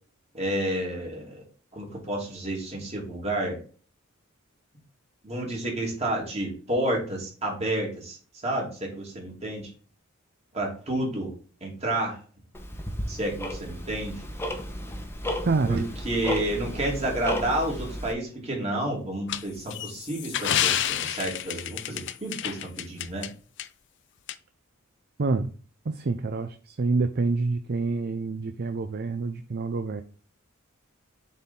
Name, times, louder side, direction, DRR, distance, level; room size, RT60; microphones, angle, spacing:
voice 1, 0.3-1.4 1.7-3.6 5.2-8.2 8.4-9.7 10.5-11.3 11.6-12.2 13.1-14.2 15.7-23.3, right 1 dB, 30° right, -1 dB, 2.8 m, -30 dB
Tick-tock, 12.5-18.1, equal, 10° left, 1.1 m, -33 dB
voice 2, 15.5-15.9 25.2-25.5 25.8-30.0, right 3 dB, 50° right, 8 dB, 0.5 m, -27 dB
sound 1, 19.3-23.3 23.6-23.7 24.3-24.4, left 11 dB, 60° left, 0.5 m, -29 dB
7.3 x 4.2 x 3.7 m, 0.40 s
head